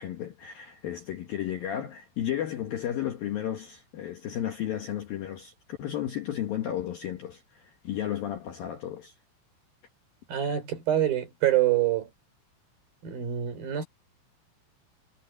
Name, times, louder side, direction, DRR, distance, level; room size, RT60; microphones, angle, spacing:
voice 1, 0.0-9.1, left 11 dB, 65° left, 2.5 m, -33 dB
voice 2, 10.3-12.1 13.0-13.9, right 12 dB, 50° right, 5.5 m, -26 dB
omnidirectional pair, 5.8 m